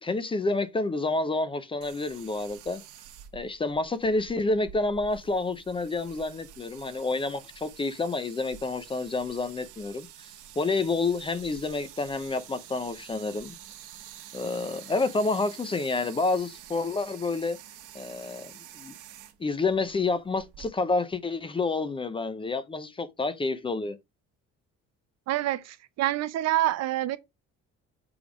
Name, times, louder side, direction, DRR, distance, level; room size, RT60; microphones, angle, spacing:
voice 1, 0.0-2.8 3.3-10.3 10.6-13.6 14.3-17.6 17.9-18.9 19.4-24.0, left 3 dB, 15° left, 0.5 m, -29 dB
sound 1, 1.8-20.7, right 11 dB, 85° right, 1.4 m, -48 dB
voice 2, 25.3-27.2, right 14 dB, 60° right, 0.7 m, -27 dB
7.0 x 3.4 x 5.0 m
cardioid pair, 145°, 30 cm